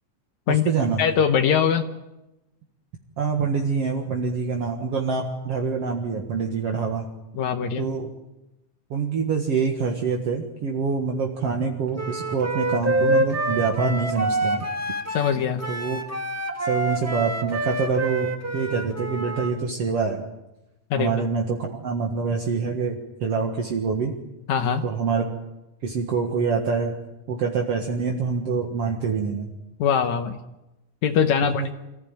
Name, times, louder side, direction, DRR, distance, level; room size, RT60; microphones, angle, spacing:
voice 1, 0.5-1.0 3.2-7.1 7.8-8.1 8.9-14.7 15.7-16.0 16.6-20.2 21.0-24.2 24.8-25.3 25.8-26.9 27.3-29.5 31.4-31.7, right 5 dB, 55° right, 1 dB, 2.6 m, -25 dB
voice 2, 1.0-1.9 7.4-7.9 15.1-15.6 20.9-21.1 24.5-24.8 29.8-30.4 31.0-31.7, left 7 dB, 75° left, 6 dB, 2.3 m, -22 dB
Wind instrument woodwind instrument, 12.0-19.5, right 2 dB, 10° right, 1.0 m, -27 dB
26.0 x 15.0 x 9.0 m, 0.97 s
omnidirectional pair, 3.4 m